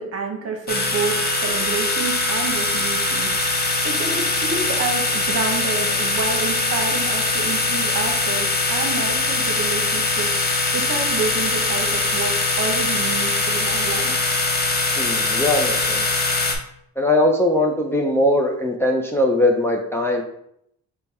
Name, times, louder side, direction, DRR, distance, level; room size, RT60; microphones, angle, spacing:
voice 1, 0.0-3.3 3.8-10.3 10.7-14.2, right 4 dB, 50° right, 3 dB, 1.1 m, -28 dB
sound 1, 0.7-16.6, left 3 dB, 30° left, 0.9 m, -22 dB
voice 2, 15.0-16.1 17.0-20.2, left 1 dB, 10° left, 0 dB, 0.5 m, -20 dB
5.1 x 2.3 x 4.2 m, 0.74 s
cardioid pair, 90°, 30 cm